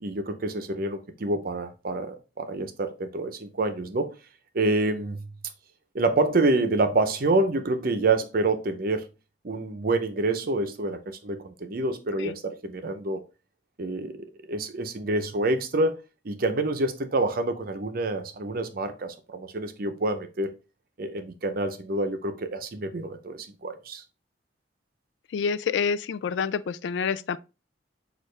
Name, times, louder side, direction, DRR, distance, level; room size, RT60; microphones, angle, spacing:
voice 1, 0.0-4.1 4.5-5.3 5.9-9.0 9.4-13.2 13.8-16.0 16.2-20.5 21.0-24.0, right 2 dB, 55° right, 0.6 m, -27 dB
voice 2, 25.3-27.4, left 6 dB, 80° left, 0.3 m, -27 dB
6.4 x 2.5 x 3.2 m
head